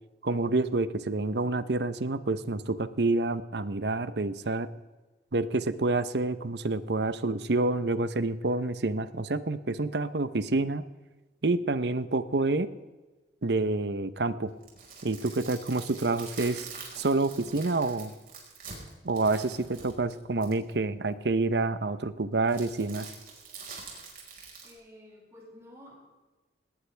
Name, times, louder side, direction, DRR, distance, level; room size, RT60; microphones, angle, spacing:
voice 1, 0.2-4.7 5.3-10.8 11.4-12.7 13.4-14.5 15.0-16.7 17.0-18.1 19.0-23.1, right 2 dB, 75° right, 13 dB, 0.9 m, -28 dB
sound 1, 14.5-20.7 22.5-24.7, right 5 dB, 50° right, 5.0 m, -45 dB
voice 2, 24.6-25.9, left 1 dB, 15° right, -6 dB, 7.1 m, -51 dB
19.5 x 18.5 x 3.4 m, 1.2 s
head